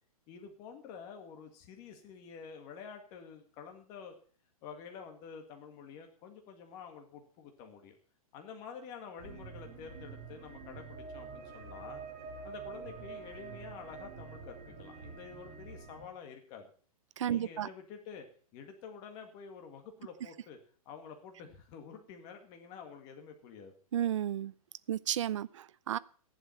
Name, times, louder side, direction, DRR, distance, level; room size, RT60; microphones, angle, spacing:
voice 1, 0.3-4.1 4.6-8.0 8.3-12.0 12.4-16.7 17.3-18.3 18.5-20.6 20.9-23.7, left 6 dB, 20° left, 4 dB, 1.9 m, -49 dB
sound 1, 9.2-16.0, right 5 dB, 30° right, 3.6 m, -47 dB
voice 2, 17.2-17.7 23.9-24.5 24.9-26.0, right 10 dB, 55° right, 18 dB, 0.5 m, -32 dB
14.5 x 11.0 x 5.8 m, 0.43 s
hypercardioid pair, 175°, 19 cm